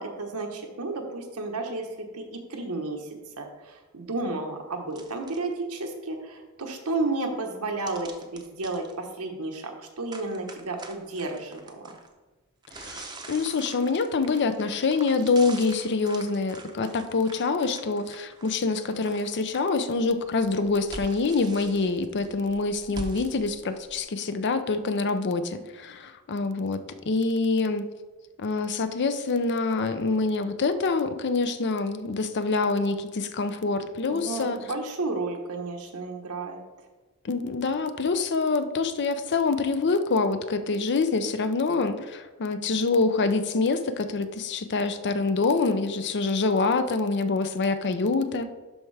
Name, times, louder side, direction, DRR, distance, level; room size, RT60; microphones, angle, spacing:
voice 1, 0.0-11.9 34.1-36.6, right 2 dB, 90° right, 3 dB, 1.2 m, -32 dB
sound 1, 4.9-5.5 7.9-8.9 10.1-12.1 12.6-19.6 20.0-24.0, right 2 dB, 20° right, 0.7 m, -44 dB
voice 2, 12.8-27.8 28.4-34.6 37.2-48.5, left 3 dB, 50° left, 10 dB, 0.5 m, -26 dB
11.5 x 4.7 x 3.3 m, 1.2 s
head